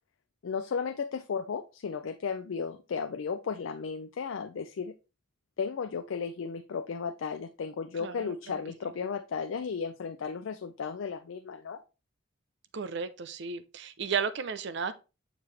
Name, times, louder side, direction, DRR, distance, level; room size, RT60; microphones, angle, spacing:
voice 1, 0.4-4.9 5.6-11.8, left 5 dB, 80° left, 0.4 m, -34 dB
voice 2, 12.7-14.9, right 6 dB, 65° right, 0.6 m, -33 dB
6.6 x 4.7 x 3.2 m
head